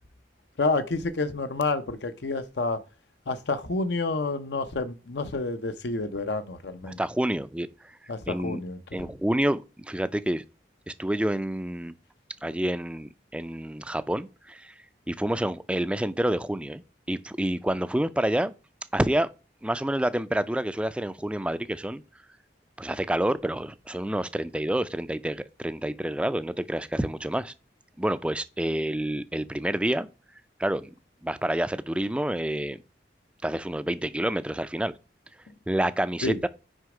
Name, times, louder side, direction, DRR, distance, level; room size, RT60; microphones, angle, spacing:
voice 1, 0.6-2.8 3.3-7.0 8.1-9.1 36.2-36.4, left 3 dB, 75° left, 0.7 m, -29 dB
voice 2, 6.8-7.9 8.3-8.6 8.9-10.4 10.9-11.9 12.4-14.7 15.1-16.8 17.1-18.5 18.9-19.3 19.6-22.0 22.8-27.5 28.0-30.1 30.6-30.9 31.2-32.8 33.4-34.9 35.7-36.5, right 1 dB, 5° right, 0.3 m, -28 dB
6.3 x 5.1 x 4.8 m
head